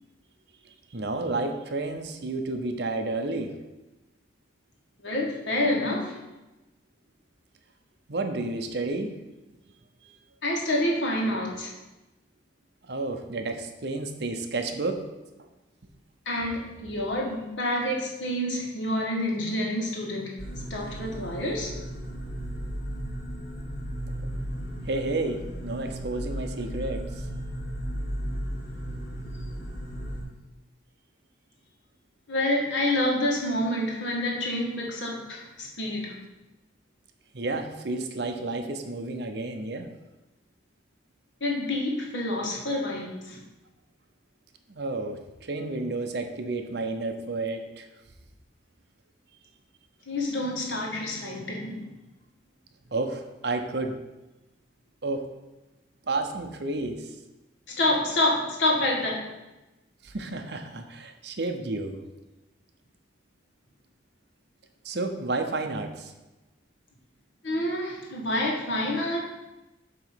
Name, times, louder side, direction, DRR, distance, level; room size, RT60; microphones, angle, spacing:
voice 1, 0.9-3.6 8.1-9.1 11.2-11.3 12.9-15.0 16.4-16.5 24.9-27.3 37.3-39.9 44.7-47.8 52.9-54.0 55.0-55.3 56.1-57.1 60.0-62.0 64.8-66.1, right 2 dB, 65° right, 5 dB, 0.7 m, -31 dB
voice 2, 5.0-6.2 10.4-11.7 16.2-20.3 20.7-21.7 32.3-36.1 41.4-43.4 50.1-51.8 57.7-59.3 67.4-69.2, left 1 dB, 80° left, -1 dB, 1.5 m, -28 dB
sound 1, 20.4-30.2, equal, 60° left, 1.5 m, -35 dB
7.6 x 3.0 x 5.8 m, 1.0 s
head